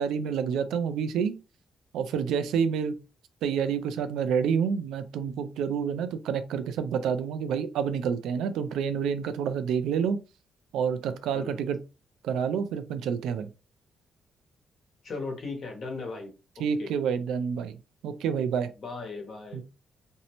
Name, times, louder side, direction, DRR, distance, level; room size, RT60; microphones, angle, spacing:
voice 1, 0.0-1.4 1.9-3.0 3.4-10.2 10.7-11.8 12.2-13.5 16.6-18.7 19.5-19.6, right 7 dB, 90° right, 0.3 m, -28 dB
voice 2, 11.3-11.7 15.0-16.3 16.8-16.9 18.8-19.6, left 3 dB, 55° left, 1.0 m, -37 dB
2.6 x 2.0 x 2.8 m
cardioid pair, 85°, 0 cm